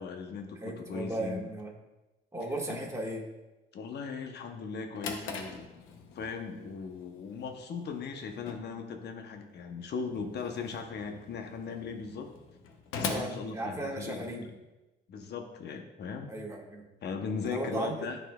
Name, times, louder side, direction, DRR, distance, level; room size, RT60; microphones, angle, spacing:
voice 1, 0.0-1.5 2.7-2.8 3.7-5.7 6.1-12.3 12.9-14.5 15.1-16.3 17.0-18.2, left 5 dB, 60° left, 5 dB, 0.8 m, -38 dB
voice 2, 0.5-1.7 2.3-3.2 13.0-14.5 16.3-16.8 17.4-18.1, right 1 dB, 15° right, -2 dB, 1.6 m, -36 dB
Drawer open or close, 4.6-14.4, left 4 dB, 90° left, 0.8 m, -43 dB
12.0 x 4.3 x 2.3 m, 1.0 s
cardioid pair, 90°, 20 cm